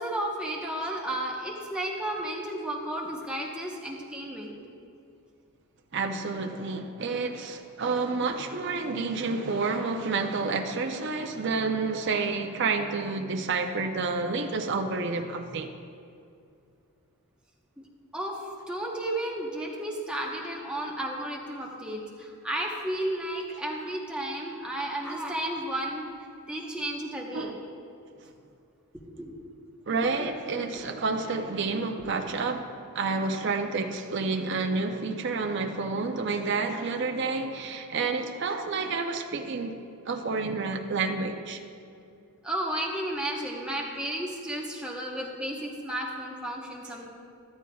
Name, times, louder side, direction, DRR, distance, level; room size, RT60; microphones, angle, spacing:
voice 1, 0.0-4.6 8.5-8.6 18.1-18.4 18.7-26.0 26.5-27.5 29.2-29.4 30.2-30.3 42.4-47.1, right 1 dB, 5° right, -2 dB, 1.0 m, -33 dB
voice 2, 5.9-15.7 27.3-27.5 29.9-39.8 40.1-41.6, right 4 dB, 50° right, 4 dB, 0.5 m, -29 dB
14.0 x 12.5 x 2.3 m, 2.5 s
head